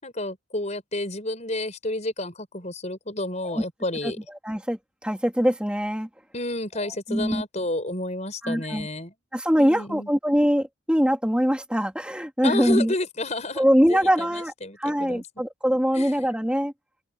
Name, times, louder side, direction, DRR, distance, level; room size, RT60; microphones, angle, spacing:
voice 1, 0.0-4.2 6.3-9.1 9.6-10.1 12.4-15.2 15.9-16.1, left 2 dB, 35° left, 5.4 m, -31 dB
voice 2, 4.4-6.1 6.7-7.4 8.4-8.9 9.3-12.9 13.6-14.5 14.8-16.7, equal, 5° right, 2.5 m, -23 dB
open air
head